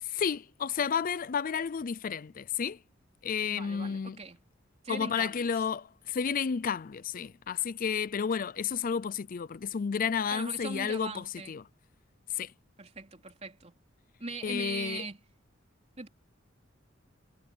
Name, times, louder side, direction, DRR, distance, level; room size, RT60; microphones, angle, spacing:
voice 1, 0.0-2.8 3.2-4.2 4.9-11.6 12.3-12.5 14.4-15.0, left 6 dB, 45° left, 0.4 m, -31 dB
voice 2, 3.5-4.4 4.8-5.5 10.3-11.6 12.8-13.8 14.2-15.2 16.0-16.1, right 3 dB, 35° right, 3.4 m, -40 dB
head